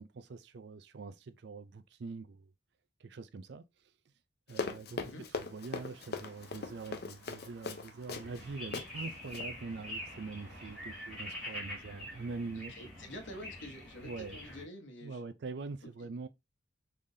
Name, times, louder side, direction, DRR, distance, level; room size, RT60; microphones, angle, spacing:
voice 1, 0.0-2.5 3.0-3.6 4.5-5.1 5.4-12.7 14.0-14.4 15.0-16.3, right 4 dB, 60° right, 0.4 m, -44 dB
Run, 4.5-8.4 8.7-8.9 9.2-9.5, left 4 dB, 55° left, 0.5 m, -39 dB
sound 1, 5.3-11.6, right 2 dB, 75° right, 1.0 m, -60 dB
sound 2, 8.1-14.6, left 1 dB, ahead, 2.0 m, -45 dB
voice 2, 12.5-15.2, left 1 dB, 75° left, 1.1 m, -48 dB
3.7 x 3.3 x 2.6 m
head